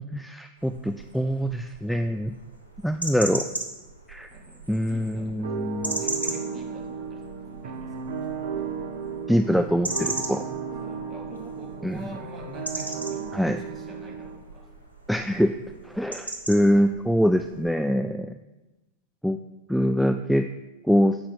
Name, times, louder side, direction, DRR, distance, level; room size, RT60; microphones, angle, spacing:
voice 1, 0.0-2.3 2.8-3.5 4.1-4.3 4.7-6.0 9.3-10.4 11.8-12.0 13.3-13.6 15.1-15.6 15.8-18.3 19.2-19.4 19.7-20.5 20.9-21.2, equal, ahead, 8 dB, 0.4 m, -24 dB
sound 1, 0.6-17.7, right 2 dB, 90° left, 1.3 m, -38 dB
voice 2, 4.3-5.6 5.9-8.1 10.8-14.7, right 2 dB, 25° right, 1 dB, 2.1 m, -45 dB
sound 2, 5.4-14.4, right 6 dB, 55° right, 1.0 m, -34 dB
8.7 x 5.6 x 6.5 m, 1.1 s
figure-of-eight pair, 90°, 0 cm